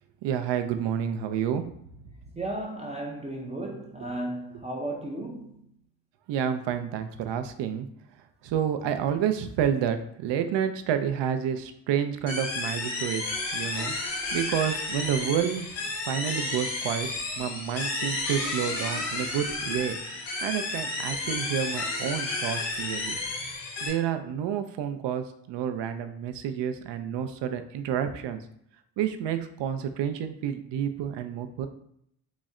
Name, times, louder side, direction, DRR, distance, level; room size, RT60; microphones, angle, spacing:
voice 1, 0.2-1.6 4.0-4.1 6.3-7.9 8.4-13.2 13.5-17.1 17.4-20.0 20.4-23.2 23.8-28.4 29.0-31.7, right 9 dB, 70° right, 0.5 m, -29 dB
voice 2, 2.4-5.7, right 1 dB, 15° right, 0.4 m, -34 dB
sound 1, 12.3-23.9, left 2 dB, 80° left, 1.4 m, -32 dB
4.0 x 2.1 x 3.6 m
cardioid pair, 95°, 44 cm